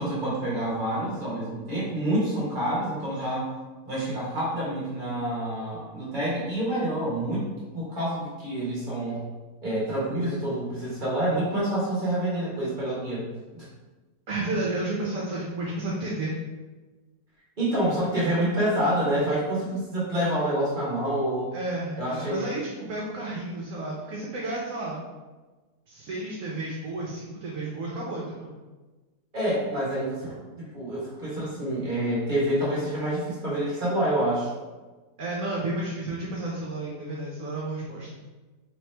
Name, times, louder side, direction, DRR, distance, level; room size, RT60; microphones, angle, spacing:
voice 1, 0.0-3.5 3.8-9.2 9.6-13.3 13.5-13.7 17.6-21.5 22.0-22.5 29.3-34.5, right 1 dB, 35° right, -7 dB, 1.1 m, -27 dB
voice 2, 14.3-16.3 21.5-25.0 25.9-28.5 35.2-38.1, right 2 dB, 65° right, -4 dB, 1.0 m, -32 dB
3.5 x 3.0 x 3.2 m, 1.3 s
omnidirectional pair, 1.8 m